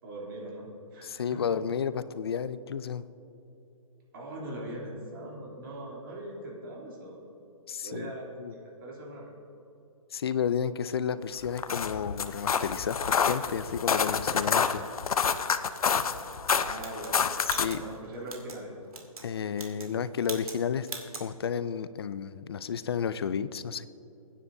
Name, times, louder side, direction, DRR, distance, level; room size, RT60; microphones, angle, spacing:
voice 1, 0.0-1.4 4.1-7.3 7.8-9.3 16.5-17.1 17.6-18.7, right 1 dB, 40° right, -4 dB, 3.2 m, -41 dB
voice 2, 1.0-3.0 7.7-8.1 8.4-8.5 10.1-14.9 17.4-17.8 19.2-20.9 21.2-23.9, left 7 dB, 45° left, 15 dB, 0.4 m, -32 dB
sound 1, 11.4-17.8, left 6 dB, 85° left, 0.7 m, -28 dB
sound 2, 16.8-18.6 18.9-19.3 19.5-19.9 20.2-20.6 20.8-21.3, right 4 dB, 85° right, 2.2 m, -41 dB
22.0 x 9.8 x 2.7 m, 2.9 s
hypercardioid pair, 165°, 18 cm